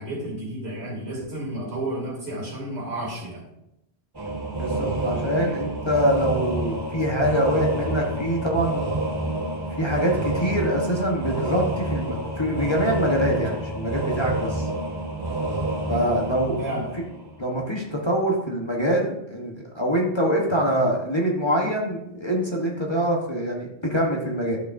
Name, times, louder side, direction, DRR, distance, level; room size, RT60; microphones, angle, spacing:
voice 1, 0.0-3.5 16.6-16.8, right 1 dB, 70° right, -2 dB, 2.8 m, -31 dB
sound 1, 4.1-17.6, right 2 dB, 20° right, 1.2 m, -29 dB
voice 2, 4.6-8.9 9.7-14.7 15.9-16.6 17.4-24.6, equal, 25° left, -2 dB, 1.1 m, -24 dB
11.5 x 7.7 x 2.6 m, 0.85 s
omnidirectional pair, 1.1 m